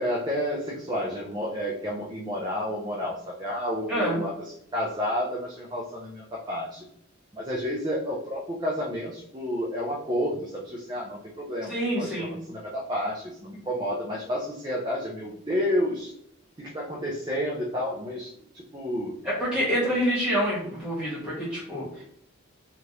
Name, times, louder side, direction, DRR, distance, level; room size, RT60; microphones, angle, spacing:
voice 1, 0.0-4.3 4.7-6.8 7.3-16.1 16.6-19.1, equal, 20° right, -4 dB, 0.4 m, -30 dB
voice 2, 3.9-4.2 11.7-12.4 19.2-22.0, equal, 5° right, -8 dB, 1.5 m, -27 dB
3.2 x 2.4 x 2.8 m, 0.69 s
head